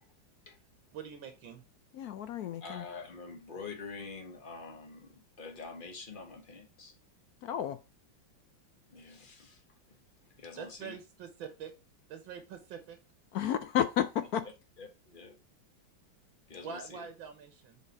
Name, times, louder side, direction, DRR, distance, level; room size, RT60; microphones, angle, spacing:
voice 1, 0.9-1.6 10.6-11.7 12.1-13.0 16.6-17.8, right 7 dB, 85° right, 1.8 m, -44 dB
voice 2, 2.0-2.8 7.4-7.8 13.3-14.5, left 10 dB, 75° left, 0.9 m, -31 dB
voice 3, 2.6-6.9 8.9-9.6 10.4-11.0 14.8-15.4 16.5-17.0, left 4 dB, 30° left, 1.2 m, -46 dB
7.1 x 4.1 x 4.2 m
omnidirectional pair, 2.1 m